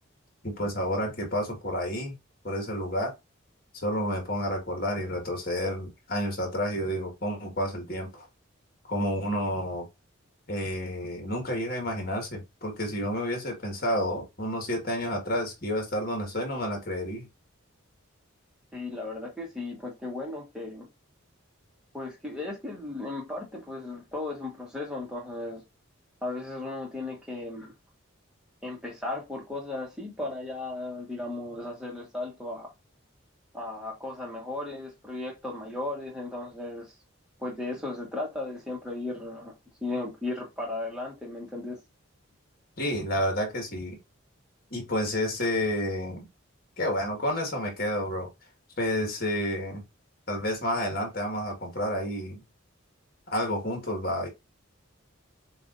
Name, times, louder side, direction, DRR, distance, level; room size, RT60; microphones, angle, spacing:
voice 1, 0.4-2.2 2.4-3.1 3.7-8.2 8.9-9.9 10.5-17.3 42.8-44.0 44.7-46.3 46.8-48.3 48.8-49.8 50.3-52.4 53.3-54.3, equal, 45° left, 1.6 m, -30 dB
voice 2, 18.7-20.9 21.9-25.6 26.2-27.7 28.6-32.7 33.5-36.9 37.4-39.5 39.8-41.8, left 2 dB, 5° right, 1.2 m, -35 dB
6.9 x 2.6 x 2.5 m
head